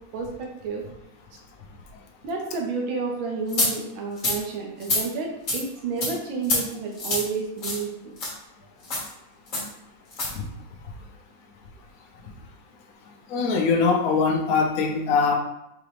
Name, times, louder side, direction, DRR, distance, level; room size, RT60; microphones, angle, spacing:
voice 1, 0.1-0.8 2.2-8.1, right 4 dB, 80° right, 0 dB, 1.7 m, -30 dB
sound 1, 3.5-3.7 4.2-4.4 4.8-5.0 5.5-5.6 6.0-6.1 6.4-6.6 7.0-7.2 7.6-7.8 8.2-8.3 8.8-9.1 9.5-9.7 10.1-10.3, left 2 dB, 45° left, 1.5 m, -25 dB
voice 2, 13.3-15.3, left 5 dB, 65° left, 2 dB, 0.9 m, -22 dB
4.9 x 2.9 x 3.2 m, 0.84 s
omnidirectional pair, 2.2 m